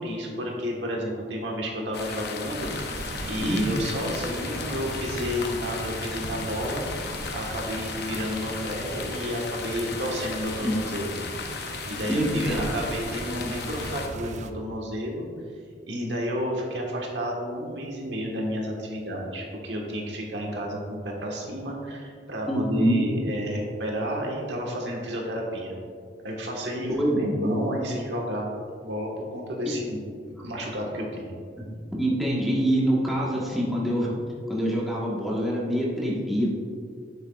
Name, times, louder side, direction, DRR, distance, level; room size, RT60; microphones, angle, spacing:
voice 1, 0.0-3.0 3.3-6.8 7.3-11.2 11.9-15.3 15.9-25.7 26.2-28.5 28.8-30.0 30.2-31.3, equal, 75° right, -1 dB, 1.4 m, -31 dB
sound 1, 1.9-14.1, left 5 dB, 65° left, 0.7 m, -36 dB
sound 2, 2.6-14.5, right 2 dB, 40° right, 0.4 m, -38 dB
voice 2, 12.1-12.7 22.5-23.0 27.0-27.6 32.0-34.1 34.5-36.5, right 1 dB, ahead, -6 dB, 1.3 m, -25 dB
10.0 x 7.2 x 2.4 m, 2.2 s
head